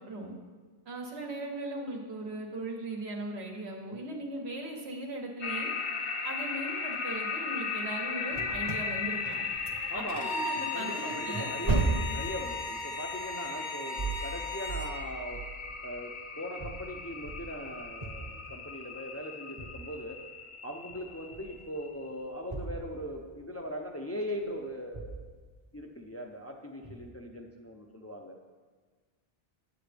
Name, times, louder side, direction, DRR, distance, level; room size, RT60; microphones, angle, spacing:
voice 1, 0.8-5.7 6.2-9.4 9.9-11.5, right 2 dB, 90° right, 1 dB, 1.4 m, -38 dB
sound 1, 5.4-22.1, left 5 dB, 55° left, 0.8 m, -37 dB
sound 2, 8.3-10.2 10.5-16.1 16.6-18.8 19.6-19.9 20.9-21.7 22.1-23.5 24.4-24.5 24.9-25.5 26.8-27.1, right 3 dB, 30° right, 0.7 m, -37 dB
voice 2, 9.9-15.4 15.8-20.2 20.6-25.4 25.7-28.4, equal, 25° left, 1 dB, 0.3 m, -40 dB
Bowed string instrument, 10.1-15.0, left 2 dB, 75° left, 1.4 m, -37 dB
7.9 x 7.9 x 3.4 m, 1.4 s
omnidirectional pair, 1.0 m